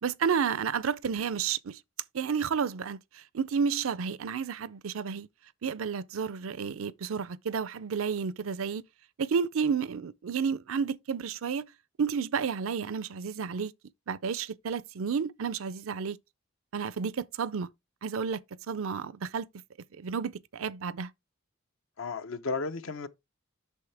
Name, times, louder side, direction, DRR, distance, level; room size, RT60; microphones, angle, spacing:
voice 1, 0.0-1.8 2.1-5.3 5.6-8.8 9.2-11.7 12.0-13.7 14.1-16.2 16.7-17.7 18.0-18.4 18.7-19.5 20.0-21.1, right 6 dB, 75° right, 0.5 m, -31 dB
voice 2, 22.0-23.1, left 4 dB, 70° left, 0.8 m, -33 dB
8.3 x 6.4 x 3.4 m
head